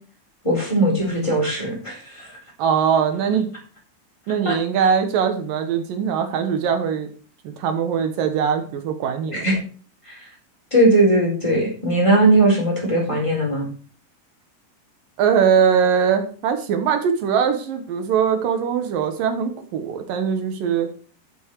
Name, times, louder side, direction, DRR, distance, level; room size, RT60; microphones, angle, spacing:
voice 1, 0.4-2.3 4.4-4.6 9.3-9.5 10.1-10.2 10.7-13.7, right 1 dB, 10° left, -2 dB, 3.8 m, -19 dB
voice 2, 2.6-3.5 4.3-7.1 7.4-9.5 15.2-20.9, right 7 dB, 70° right, 6 dB, 2.7 m, -21 dB
11.5 x 7.1 x 4.7 m, 0.42 s
omnidirectional pair, 4.4 m